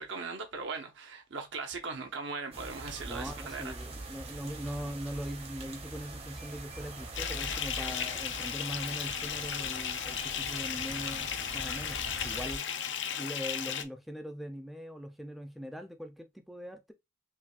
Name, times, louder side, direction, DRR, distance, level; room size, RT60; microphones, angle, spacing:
voice 1, 0.0-3.7, right 4 dB, 70° right, 0.8 m, -39 dB
sound 1, 2.5-12.6, right 2 dB, 30° right, 0.8 m, -43 dB
voice 2, 3.1-12.6 13.2-16.9, equal, ahead, 0.4 m, -41 dB
Bathtub (filling or washing) / Fill (with liquid), 7.1-13.8, left 8 dB, 65° left, 0.5 m, -35 dB
5.8 x 2.2 x 2.4 m
head